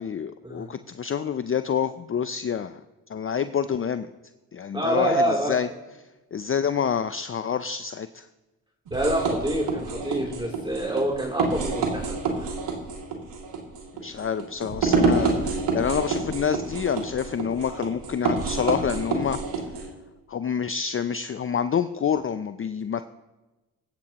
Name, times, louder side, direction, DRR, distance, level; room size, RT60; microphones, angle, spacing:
voice 1, 0.0-2.8 3.1-4.1 4.5-5.7 6.3-8.2 14.0-19.4 20.3-23.1, left 7 dB, 30° left, 11 dB, 0.6 m, -27 dB
voice 2, 4.7-5.6 8.9-12.5, right 1 dB, 10° right, -3 dB, 3.1 m, -26 dB
sound 1, 8.9-19.9, right 4 dB, 80° right, 2.6 m, -28 dB
23.0 x 8.4 x 3.0 m, 1.1 s
supercardioid pair, 50°, 42 cm